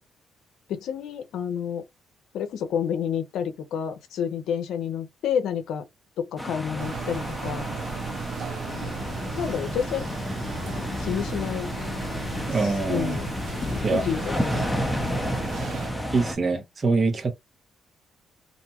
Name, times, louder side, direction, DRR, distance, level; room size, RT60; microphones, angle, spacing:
voice 1, 0.7-1.8 2.3-5.9 6.2-7.7 9.4-10.1 11.0-11.7 12.6-13.4 13.9-14.6, left 8 dB, 80° left, 0.6 m, -29 dB
sound 1, 6.4-16.4, equal, 5° left, 0.7 m, -33 dB
sound 2, 6.8-15.9, right 6 dB, 70° right, 0.5 m, -36 dB
sound 3, 8.7-15.4, left 3 dB, 30° left, 0.4 m, -34 dB
voice 2, 12.5-13.2 13.8-14.0 16.1-17.3, right 4 dB, 40° right, 0.9 m, -24 dB
2.6 x 2.2 x 2.8 m
cardioid pair, 90°, 0 cm